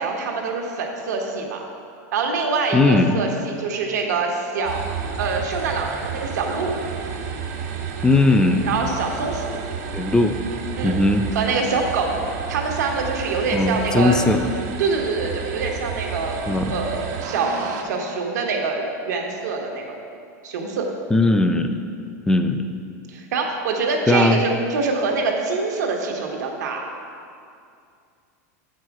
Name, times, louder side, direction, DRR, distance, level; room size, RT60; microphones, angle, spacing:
voice 1, 0.0-1.6 2.1-4.9 5.2-6.8 8.6-9.5 10.8-11.0 11.3-12.2 12.5-14.2 14.8-20.0 20.4-20.9 23.1-26.9, right 4 dB, 85° right, 1 dB, 1.1 m, -25 dB
voice 2, 2.7-3.2 8.0-8.7 9.9-10.4 10.8-11.2 13.5-14.5 16.5-16.8 21.1-21.8 22.3-22.7 24.1-24.4, left 2 dB, 5° left, 7 dB, 0.4 m, -18 dB
sound 1, 4.6-17.8, right 6 dB, 70° right, 1.3 m, -31 dB
7.0 x 4.8 x 5.8 m, 2.4 s
supercardioid pair, 130°, 9 cm